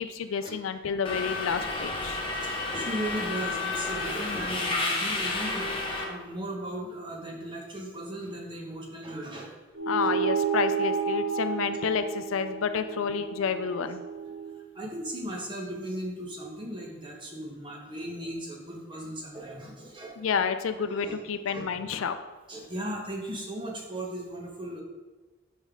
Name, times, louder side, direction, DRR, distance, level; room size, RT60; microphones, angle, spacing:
voice 1, 0.0-2.2 9.9-14.0 20.2-22.1, left 6 dB, 75° left, 10 dB, 0.4 m, -30 dB
Subway metro underground, 1.0-6.0, left 3 dB, 25° left, 1.0 m, -31 dB
voice 2, 2.4-5.7 6.0-9.5 10.0-10.1 14.4-20.2 20.8-21.2 21.5-21.7 22.5-24.8, right 1 dB, 25° right, -2 dB, 1.1 m, -37 dB
sound 1, 9.7-14.6, right 6 dB, 85° right, 1.0 m, -31 dB
5.4 x 5.1 x 3.7 m, 1.2 s
head